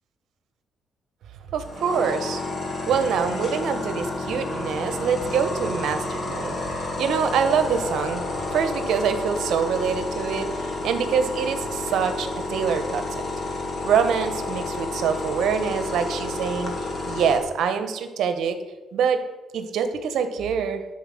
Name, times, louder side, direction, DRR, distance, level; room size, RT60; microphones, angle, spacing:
voice 1, 1.5-2.4 2.9-8.2 8.5-13.2 13.8-16.7 17.0-18.6 18.9-19.2 19.5-20.8, right 7 dB, 75° right, 9 dB, 1.1 m, -25 dB
sound 1, 1.6-17.4, left 2 dB, 35° left, 2.6 m, -30 dB
11.0 x 4.6 x 7.8 m, 1.2 s
cardioid pair, 90°, 0 cm